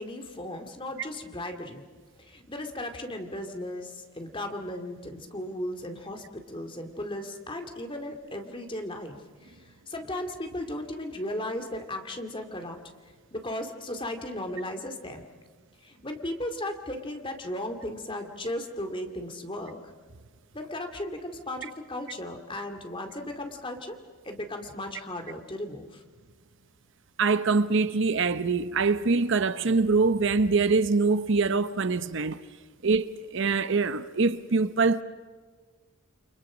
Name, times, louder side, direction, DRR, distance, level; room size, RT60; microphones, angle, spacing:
voice 1, 0.0-1.9 2.2-9.2 9.4-12.8 13.3-15.2 15.8-19.8 20.5-24.0 24.2-26.0, left 1 dB, 25° left, 2.3 m, -36 dB
voice 2, 27.2-32.4 32.8-35.0, right 4 dB, 55° right, 0.8 m, -24 dB
30.0 x 24.5 x 6.2 m
head